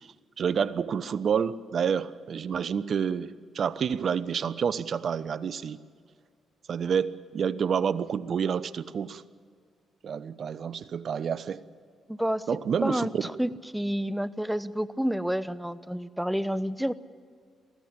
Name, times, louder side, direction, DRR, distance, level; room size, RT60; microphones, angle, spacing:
voice 1, 0.4-5.8 6.7-9.2 10.0-11.6 12.5-13.2, right 7 dB, 60° right, 16 dB, 0.8 m, -28 dB
voice 2, 12.1-12.4 12.8-16.9, equal, 5° right, 16 dB, 0.9 m, -29 dB
23.5 x 15.5 x 8.8 m, 2.1 s
supercardioid pair, 55°, 0 cm